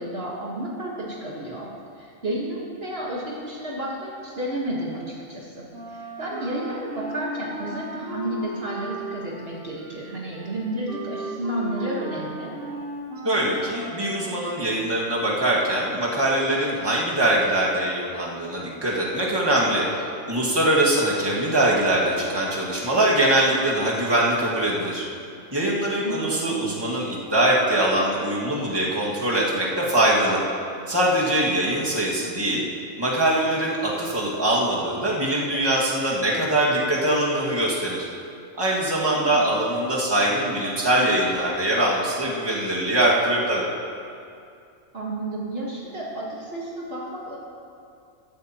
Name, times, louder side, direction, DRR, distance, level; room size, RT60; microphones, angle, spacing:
voice 1, 0.0-1.7 2.0-12.5 26.0-26.8 39.1-39.5 44.9-47.4, right 1 dB, 50° right, -4 dB, 1.8 m, -31 dB
Wind instrument woodwind instrument, 5.7-14.6, right 1 dB, 70° right, 3.0 m, -36 dB
voice 2, 13.2-25.1 25.5-30.4 30.9-32.6 33.0-38.1 38.6-43.7, right 1 dB, 20° right, -5 dB, 1.9 m, -22 dB
15.0 x 13.5 x 3.0 m, 2.5 s
omnidirectional pair, 1.3 m